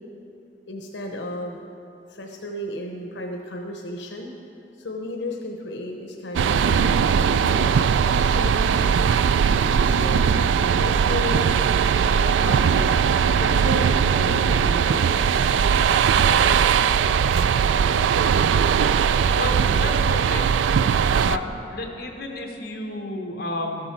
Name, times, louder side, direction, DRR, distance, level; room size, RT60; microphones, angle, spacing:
voice 1, 0.7-1.6 2.1-4.3 4.8-11.6 12.1-13.1 13.4-15.3 16.3-16.6 19.6-20.0 21.3-21.5, left 1 dB, 85° left, 2 dB, 0.9 m, -34 dB
sound 1, 6.3-21.4, right 7 dB, 90° right, 0.3 m, -19 dB
voice 2, 19.3-20.6 21.3-21.5 21.7-23.9, left 2 dB, 55° left, 2 dB, 1.3 m, -32 dB
13.0 x 7.7 x 6.0 m, 2.8 s
head